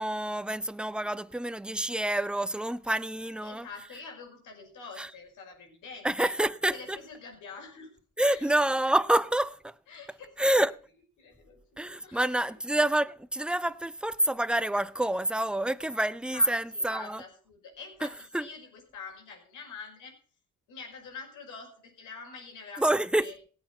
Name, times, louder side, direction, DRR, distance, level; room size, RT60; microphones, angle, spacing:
voice 1, 0.0-3.7 5.0-5.1 6.0-7.0 8.2-9.7 10.4-10.8 11.8-17.2 18.3-18.5 22.8-23.2, right 1 dB, 5° right, 0.6 m, -27 dB
voice 2, 3.4-6.4 6.7-8.0 8.2-8.7 9.9-10.6 11.2-12.5 16.3-20.2 20.7-23.4, left 5 dB, 85° left, 5.4 m, -46 dB
17.5 x 8.0 x 5.6 m
cardioid pair, 90°, 30 cm